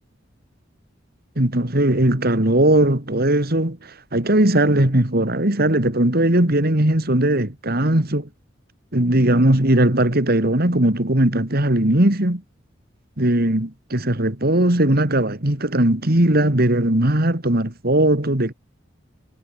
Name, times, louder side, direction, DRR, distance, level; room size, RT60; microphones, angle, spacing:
voice 1, 1.4-8.3 8.9-12.4 13.2-18.5, right 1 dB, 55° right, 3.1 m, -19 dB
head